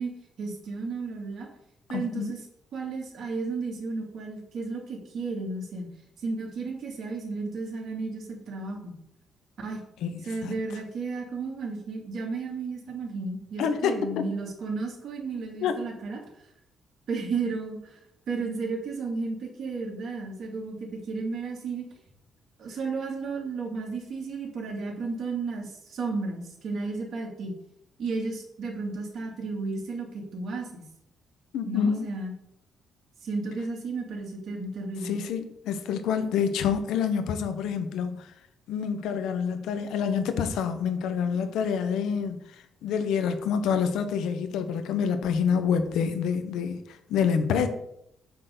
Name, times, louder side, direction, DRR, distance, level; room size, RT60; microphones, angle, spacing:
voice 1, 0.0-1.5 1.9-2.4 2.7-5.9 6.2-9.0 9.6-9.8 10.2-16.2 17.1-18.0 18.3-21.9 22.6-27.6 28.0-30.8 31.6-32.3 33.2-35.2, right 4 dB, 60° right, 2.8 m, -33 dB
voice 2, 1.9-2.3 10.0-10.5 13.6-14.2 15.6-15.7 31.5-32.1 35.0-38.3 38.7-42.4 42.8-46.8 47.1-47.7, left 7 dB, 85° left, 1.1 m, -27 dB
8.4 x 3.9 x 6.8 m
cardioid pair, 90°, 0 cm